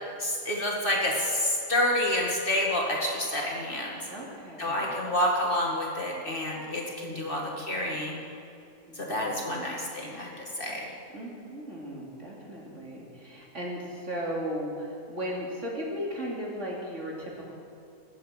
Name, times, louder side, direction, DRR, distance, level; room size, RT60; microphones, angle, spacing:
voice 1, 0.2-4.0 4.6-8.2 8.9-10.9, left 1 dB, 35° left, -2 dB, 2.3 m, -28 dB
voice 2, 4.1-4.9 6.9-7.6 8.9-9.5 11.1-17.5, equal, 50° right, -3 dB, 3.3 m, -37 dB
20.0 x 8.0 x 8.3 m, 2.7 s
omnidirectional pair, 1.6 m